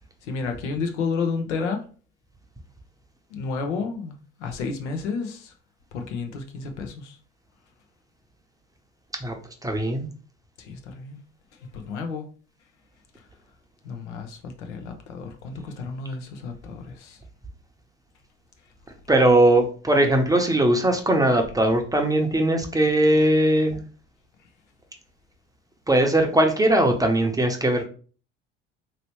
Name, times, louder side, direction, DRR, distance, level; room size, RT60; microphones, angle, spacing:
voice 1, 0.2-1.8 3.3-5.5 5.9-7.2 10.6-11.2 11.7-12.3 13.8-17.2, left 4 dB, 80° left, 0.8 m, -31 dB
voice 2, 9.2-10.1 19.1-23.8 25.9-27.9, right 1 dB, 10° right, 0.7 m, -20 dB
3.0 x 2.9 x 3.0 m
hypercardioid pair, 75°, 35 cm